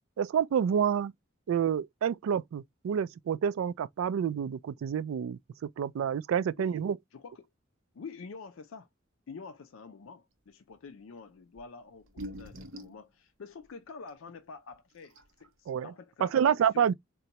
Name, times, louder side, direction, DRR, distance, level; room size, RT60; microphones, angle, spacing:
voice 1, 0.2-1.1 1.5-5.4 5.8-7.0 15.7-15.9 16.2-16.9, right 8 dB, 90° right, 0.3 m, -28 dB
voice 2, 7.1-7.5 7.9-8.9 9.3-16.9, left 4 dB, 80° left, 0.4 m, -47 dB
sound 1, 11.6-11.7 12.0-13.0 14.1-14.2 14.7-14.8 15.0-15.5, equal, 70° right, 0.7 m, -43 dB
3.9 x 2.2 x 2.8 m
head